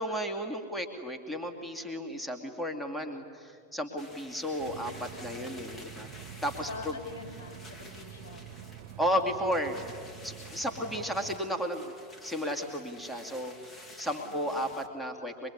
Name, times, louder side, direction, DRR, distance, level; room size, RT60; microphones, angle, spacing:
voice 1, 0.0-6.1 6.4-6.9 9.0-9.8 10.2-11.9 12.2-15.5, equal, 5° left, 3 dB, 2.6 m, -33 dB
sound 1, 4.0-14.9, left 2 dB, 20° left, 2.6 m, -51 dB
voice 2, 4.6-5.0 6.7-8.5 10.7-11.1 14.1-14.6, left 4 dB, 75° left, -1 dB, 4.6 m, -46 dB
sound 2, 4.6-11.4, right 9 dB, 45° right, 1.8 m, -47 dB
24.0 x 23.0 x 9.8 m, 2.2 s
figure-of-eight pair, 90°, 0 cm